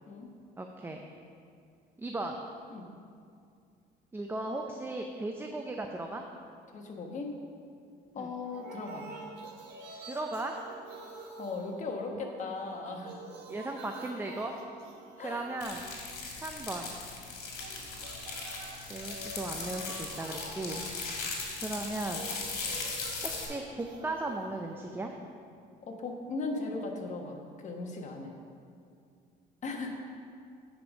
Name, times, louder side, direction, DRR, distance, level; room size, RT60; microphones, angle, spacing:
voice 1, 0.6-1.0 2.0-2.4 4.1-6.2 8.2-8.3 10.0-10.6 12.1-12.3 13.5-14.5 15.2-15.8 16.4-17.0 18.9-20.8 21.6-22.3 23.4-25.1, right 2 dB, 15° right, 3 dB, 0.5 m, -36 dB
voice 2, 6.7-7.3 8.1-9.1 11.4-13.3 15.2-15.5 20.7-20.8 25.8-28.3 29.6-29.9, left 3 dB, 45° left, 2 dB, 1.3 m, -38 dB
sound 1, 8.4-12.4 12.7-16.5 17.4-25.4, right 2 dB, 85° right, 1.3 m, -48 dB
sound 2, 15.6-23.5, left 4 dB, 70° left, 2.1 m, -38 dB
8.6 x 5.2 x 6.1 m, 2.4 s
cardioid pair, 110°, 17 cm